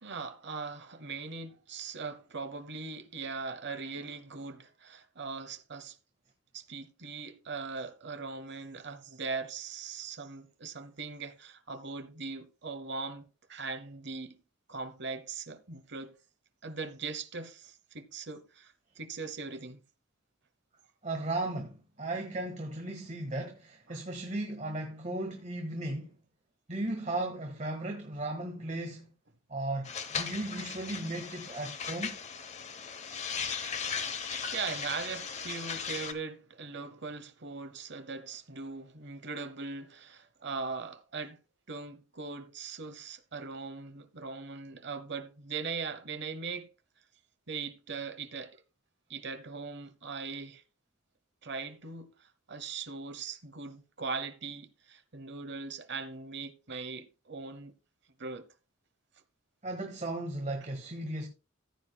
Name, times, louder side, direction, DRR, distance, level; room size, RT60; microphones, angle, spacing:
voice 1, 0.0-6.0 6.5-14.4 14.7-16.2 16.6-19.8 22.1-22.2 23.9-24.0 34.5-41.4 41.7-46.7 47.5-48.6 49.1-50.6 51.4-57.7 58.2-58.5, right 4 dB, 55° right, 1.0 m, -40 dB
voice 2, 21.0-26.1 26.7-29.1 29.5-32.2 59.6-61.3, right 2 dB, 35° right, 1.6 m, -36 dB
sound 1, 29.8-36.1, left 6 dB, 35° left, 0.9 m, -37 dB
14.5 x 9.1 x 2.3 m
head